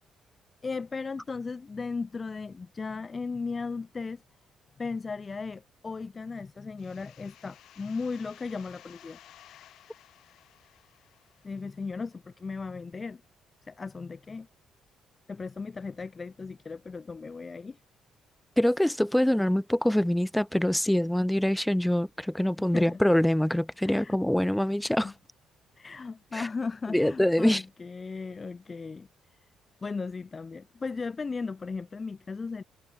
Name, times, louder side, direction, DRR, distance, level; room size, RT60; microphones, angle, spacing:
voice 1, 0.6-4.2 4.8-9.2 11.4-13.2 13.6-14.5 15.3-17.8 22.7-23.0 23.9-24.2 25.0-25.1 25.8-29.4 29.8-32.6, left 4 dB, 30° left, 1.1 m, -36 dB
sound 1, 6.8-12.3, left 12 dB, 75° left, 1.7 m, -56 dB
voice 2, 18.6-25.1 26.3-26.5 26.9-27.6, left 1 dB, 5° left, 0.7 m, -24 dB
cardioid pair, 85°, 0 cm